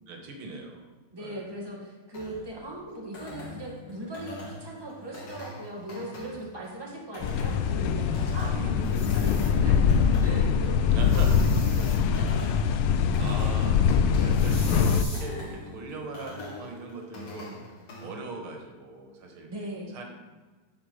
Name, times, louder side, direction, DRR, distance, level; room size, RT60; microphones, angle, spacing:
voice 1, 0.1-0.9 1.2-1.6 8.5-9.3 10.9-11.4 13.2-17.6 18.0-19.5 19.9-20.0, right 3 dB, 85° right, 2 dB, 2.2 m, -40 dB
voice 2, 1.1-12.3 13.0-13.1 19.5-19.9, right 1 dB, 10° right, -3 dB, 2.0 m, -39 dB
sound 1, 2.1-18.1, left 1 dB, 60° left, 2.4 m, -43 dB
sound 2, 7.2-15.0, left 6 dB, 80° left, 1.4 m, -23 dB
sound 3, 8.8-9.5 11.0-12.0 14.3-15.2, left 1 dB, 25° left, 2.2 m, -43 dB
9.3 x 5.5 x 6.5 m, 1.3 s
omnidirectional pair, 2.3 m